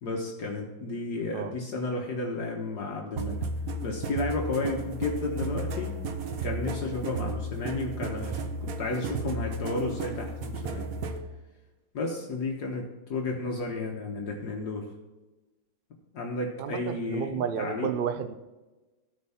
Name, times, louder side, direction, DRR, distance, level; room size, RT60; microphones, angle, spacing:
voice 1, 0.0-3.5 3.8-6.0 6.4-10.9 11.9-14.9 16.1-17.9, left 3 dB, 65° left, 1 dB, 1.6 m, -32 dB
sound 1, 3.2-11.2, right 3 dB, 55° right, 1.2 m, -34 dB
voice 2, 16.6-18.3, right 8 dB, 75° right, 9 dB, 0.5 m, -31 dB
13.5 x 4.5 x 5.7 m, 1.1 s
omnidirectional pair, 2.0 m